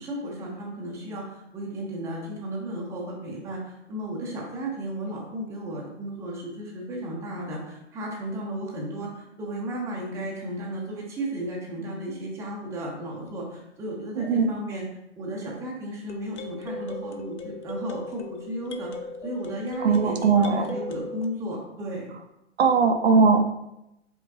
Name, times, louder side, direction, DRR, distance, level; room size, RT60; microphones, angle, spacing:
voice 1, 0.0-14.9 15.2-18.9 19.2-22.1, right 1 dB, 10° right, -3 dB, 0.6 m, -34 dB
sound 1, 13.3-13.4 16.1-21.3, left 2 dB, 70° left, 0.6 m, -37 dB
voice 2, 14.2-14.5 19.8-20.7 22.6-23.4, right 5 dB, 60° right, 6 dB, 0.6 m, -19 dB
4.7 x 3.6 x 2.9 m, 0.87 s
figure-of-eight pair, 115°, 35 cm